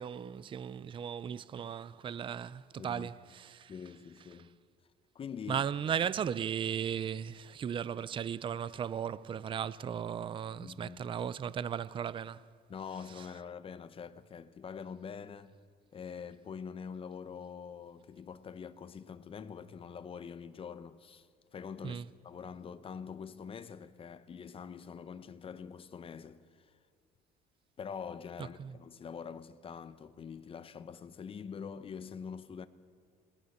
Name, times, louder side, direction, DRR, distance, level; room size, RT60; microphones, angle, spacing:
voice 1, 0.0-3.7 5.5-12.4 21.8-22.0 28.6-28.7, right 8 dB, 30° right, 0.5 m, -36 dB
voice 2, 2.8-3.1 3.7-4.6 5.1-5.7 10.5-11.0 12.7-15.5 15.9-21.3 21.5-26.8 27.8-32.7, left 6 dB, 30° left, 0.9 m, -45 dB
28.0 x 21.0 x 6.6 m
cardioid pair, 135°, 18 cm